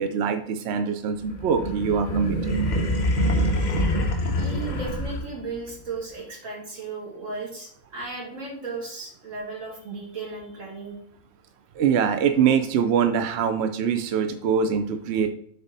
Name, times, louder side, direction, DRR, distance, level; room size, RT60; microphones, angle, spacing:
voice 1, 0.0-2.4 11.8-15.3, right 7 dB, 65° right, 8 dB, 0.8 m, -23 dB
sound 1, 1.3-5.5, equal, 40° left, 0.9 m, -25 dB
voice 2, 4.2-11.0, right 3 dB, 85° right, -2 dB, 2.3 m, -35 dB
6.9 x 4.1 x 4.0 m, 0.66 s
omnidirectional pair, 1.3 m